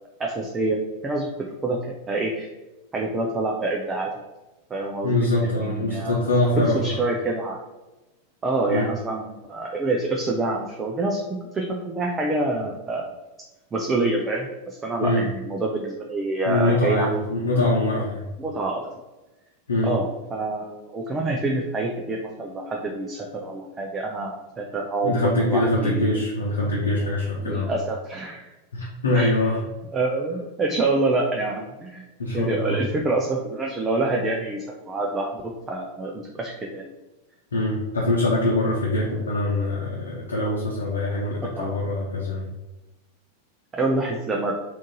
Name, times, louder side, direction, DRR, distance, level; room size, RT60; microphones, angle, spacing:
voice 1, 0.2-1.3 1.6-2.5 2.9-4.1 4.7-5.3 5.6-6.2 6.7-7.6 8.4-13.2 13.7-17.1 18.4-18.9 19.8-26.2 27.4-28.4 29.1-29.4 29.9-32.0 32.3-36.8 41.5-41.7 43.7-44.5, right 2 dB, 20° right, 0 dB, 0.5 m, -26 dB
voice 2, 5.0-6.8 8.7-8.9 15.0-15.3 16.4-18.3 19.7-20.0 25.0-27.7 28.7-29.6 32.2-32.8 37.5-42.5, left 1 dB, 70° left, -4 dB, 0.8 m, -23 dB
3.6 x 2.5 x 3.9 m, 1.1 s
figure-of-eight pair, 90°, 0 cm